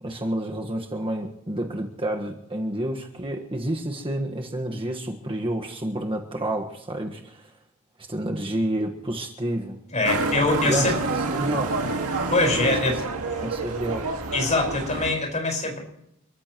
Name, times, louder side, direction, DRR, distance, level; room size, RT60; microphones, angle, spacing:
voice 1, 0.0-7.5 8.1-9.8 10.6-10.9 11.3-11.8 13.4-14.1, right 1 dB, 25° right, 2 dB, 1.5 m, -29 dB
voice 2, 9.9-10.9 12.3-13.0 14.3-15.8, left 2 dB, 35° left, 2 dB, 5.1 m, -23 dB
Motorcycle, 10.0-15.1, right 3 dB, 80° right, 1.9 m, -28 dB
30.0 x 14.5 x 3.1 m, 0.80 s
head